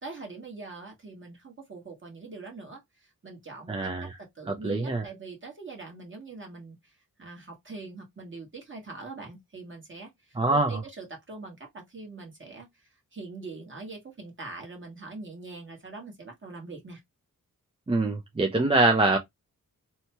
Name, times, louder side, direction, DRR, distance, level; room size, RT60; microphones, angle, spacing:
voice 1, 0.0-3.9 4.2-17.0, right 3 dB, 35° right, 1.3 m, -43 dB
voice 2, 3.7-4.2 4.5-5.1 10.4-10.8 17.9-19.2, right 2 dB, 15° right, 0.4 m, -24 dB
2.8 x 2.2 x 2.8 m
wide cardioid pair, 125°, 35 cm